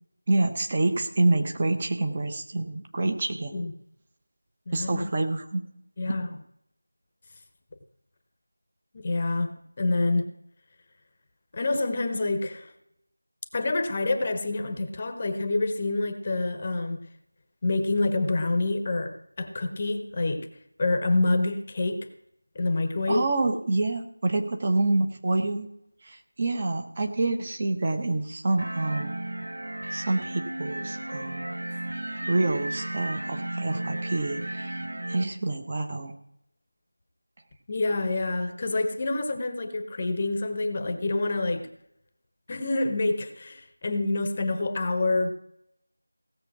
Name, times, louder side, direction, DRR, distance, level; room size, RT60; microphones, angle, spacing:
voice 1, 0.3-3.5 4.7-5.6 23.1-25.7 26.0-29.1 29.9-31.5 32.2-34.7 35.1-36.1, right 2 dB, 25° right, 5 dB, 1.0 m, -27 dB
voice 2, 4.7-5.1 6.0-6.3 8.9-10.3 11.5-12.7 13.5-17.1 17.6-20.5 20.8-22.1 22.5-23.3 37.7-41.7 42.5-45.3, left 2 dB, 25° left, 7 dB, 0.9 m, -27 dB
sound 1, 28.6-35.2, right 1 dB, 55° right, 0.9 m, -34 dB
17.0 x 7.0 x 6.0 m, 0.75 s
figure-of-eight pair, 170°, 0 cm